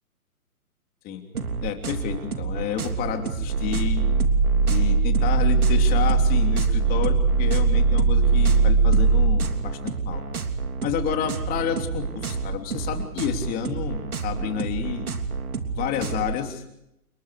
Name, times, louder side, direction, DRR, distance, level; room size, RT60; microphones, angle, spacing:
sound 1, 1.3-16.4, right 5 dB, 75° right, 3.2 m, -30 dB
voice 1, 1.6-4.0 4.7-9.8 10.0-10.2 10.8-15.1 15.7-16.6, left 9 dB, 20° left, 5 dB, 3.1 m, -30 dB
sound 2, 3.4-9.4, right 4 dB, 30° right, 6.7 m, -20 dB
28.5 x 23.5 x 4.9 m, 0.82 s
hypercardioid pair, 140°, 44 cm